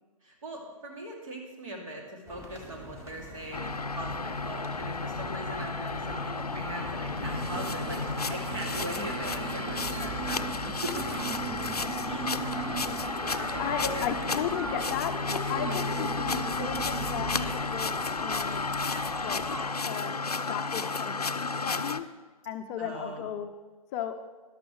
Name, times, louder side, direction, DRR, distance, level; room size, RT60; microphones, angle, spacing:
voice 1, 0.2-8.0 8.3-11.2 12.1-12.3 13.5-14.3 22.8-23.3, right 1 dB, 60° right, 0 dB, 2.9 m, -40 dB
sound 1, 2.3-19.7, equal, 15° right, 1.4 m, -44 dB
sound 2, 3.5-22.0, left 4 dB, 90° left, 0.5 m, -32 dB
sound 3, 7.2-17.5, right 8 dB, 40° right, 0.8 m, -39 dB
voice 2, 13.6-18.6 19.2-19.4 19.9-22.1 22.4-23.5 23.9-24.2, left 9 dB, 25° left, 7 dB, 0.5 m, -35 dB
13.0 x 11.5 x 3.3 m, 1.3 s
figure-of-eight pair, 115°, 19 cm